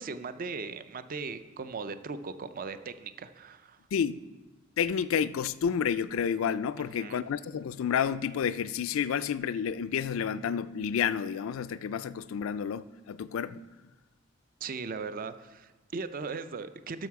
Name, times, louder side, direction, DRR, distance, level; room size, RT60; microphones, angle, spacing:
voice 1, 0.0-3.8 6.8-7.2 14.6-17.1, right 4 dB, 45° right, 0.5 m, -38 dB
voice 2, 4.8-13.6, left 7 dB, 80° left, 0.4 m, -30 dB
11.5 x 6.4 x 4.7 m
head